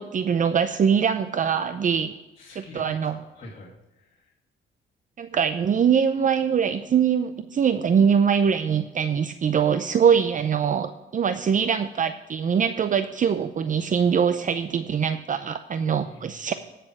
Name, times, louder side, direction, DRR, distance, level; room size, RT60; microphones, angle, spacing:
voice 1, 0.0-2.1 2.6-3.2 5.2-16.5, right 7 dB, 40° right, 10 dB, 0.6 m, -23 dB
voice 2, 2.4-4.3 15.9-16.4, left 1 dB, 40° left, -6 dB, 2.8 m, -45 dB
15.0 x 6.8 x 4.8 m, 1.1 s
cardioid pair, 90°, 20 cm